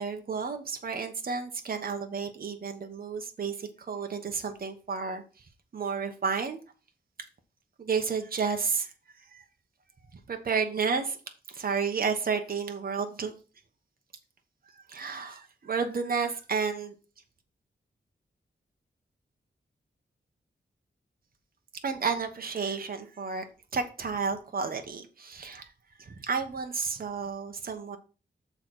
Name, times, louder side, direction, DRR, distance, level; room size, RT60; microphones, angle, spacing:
voice 1, 0.0-5.2 5.7-6.6 7.8-9.4 10.3-11.2 11.5-13.3 14.9-16.9 21.8-23.4 23.7-25.7 26.0-28.0, right 5 dB, 50° right, 5 dB, 1.2 m, -31 dB
6.8 x 4.0 x 6.1 m, 0.34 s
wide cardioid pair, 125°, 19 cm